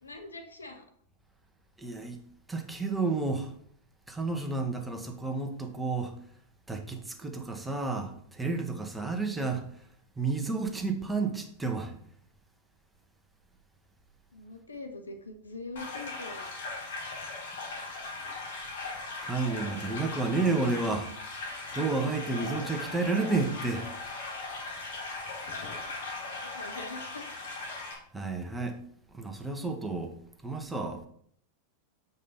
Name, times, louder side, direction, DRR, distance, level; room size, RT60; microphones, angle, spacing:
voice 1, 0.0-0.8 14.3-16.5 26.2-27.2, left 3 dB, 85° left, 1.1 m, -43 dB
voice 2, 1.8-2.2 2.5-3.5 4.1-6.1 6.7-9.7 10.2-12.0 17.1-17.2 19.2-21.1 21.7-23.9 28.1-28.8 29.1-30.2 30.4-31.1, right 3 dB, 10° right, 1.3 m, -31 dB
sound 1, 15.8-27.9, left 3 dB, 70° left, 2.0 m, -39 dB
7.4 x 5.4 x 4.2 m
figure-of-eight pair, 95°, 0 cm